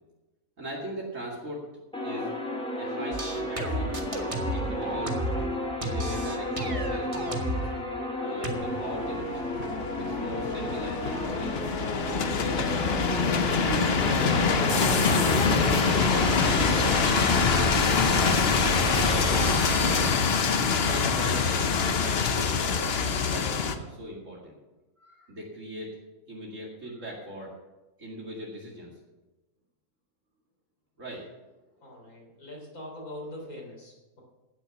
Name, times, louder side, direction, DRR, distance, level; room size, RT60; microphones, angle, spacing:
voice 1, 0.6-1.7 2.0-2.3 2.8-5.2 5.8-7.7 8.2-9.6 10.0-11.6 12.3-16.1 16.8-18.5 18.9-19.5 20.3-24.6 25.0-26.0 26.3-27.5 28.0-28.9 31.0-31.2, equal, 55° right, -3 dB, 2.6 m, -39 dB
sound 1, 1.9-20.0, left 1 dB, 5° left, 2.6 m, -31 dB
sound 2, 3.1-5.5 5.8-7.7 8.4-8.6, right 1 dB, 25° right, 1.3 m, -32 dB
sound 3, 8.5-23.8, left 5 dB, 50° left, 0.9 m, -25 dB
voice 2, 31.8-34.2, left 1 dB, 75° left, -1 dB, 4.1 m, -42 dB
16.0 x 6.9 x 6.1 m, 1.1 s
omnidirectional pair, 1.6 m